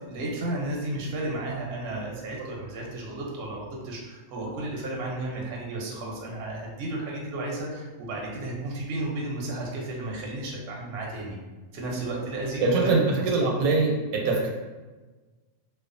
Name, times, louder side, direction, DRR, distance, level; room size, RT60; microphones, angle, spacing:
voice 1, 0.0-11.4 11.7-13.0, right 2 dB, 60° right, -3 dB, 0.7 m, -33 dB
voice 2, 12.6-14.5, right 3 dB, 85° right, -1 dB, 1.1 m, -23 dB
2.4 x 2.3 x 2.5 m, 1.3 s
omnidirectional pair, 1.5 m